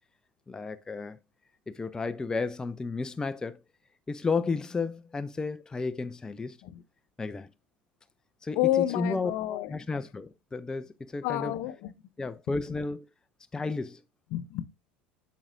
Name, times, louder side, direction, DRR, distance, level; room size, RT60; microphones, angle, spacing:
voice 1, 0.5-1.2 1.7-3.6 4.1-6.6 7.2-7.5 8.4-9.3 9.7-11.5 12.2-13.1 13.5-14.0, left 4 dB, 15° left, 0.4 m, -32 dB
voice 2, 8.6-9.7 11.2-11.9 14.3-14.7, left 14 dB, 50° left, 0.7 m, -29 dB
8.6 x 6.1 x 2.5 m
figure-of-eight pair, 70°, 5 cm